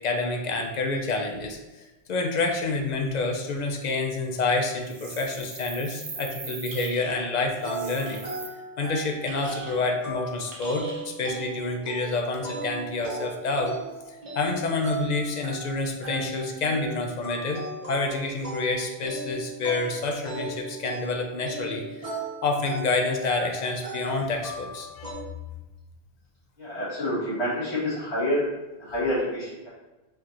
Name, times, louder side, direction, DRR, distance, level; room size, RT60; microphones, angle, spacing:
voice 1, 0.0-1.6 2.1-8.2 8.8-13.8 14.1-17.6 17.9-22.1 22.4-25.1, left 3 dB, 55° left, 2 dB, 0.5 m, -28 dB
sound 1, 4.9-6.9 7.6-8.5, right 5 dB, 50° right, 0.4 m, -40 dB
sound 2, 6.7-7.2 8.0-8.2 9.3-9.8 10.5-11.1, right 1 dB, 75° right, 1.1 m, -43 dB
sound 3, 7.6-25.1, right 2 dB, 35° right, 1.4 m, -37 dB
voice 2, 26.6-28.4 28.8-29.7, left 1 dB, 85° left, -9 dB, 1.9 m, -28 dB
4.4 x 2.8 x 2.5 m, 1.1 s
omnidirectional pair, 1.1 m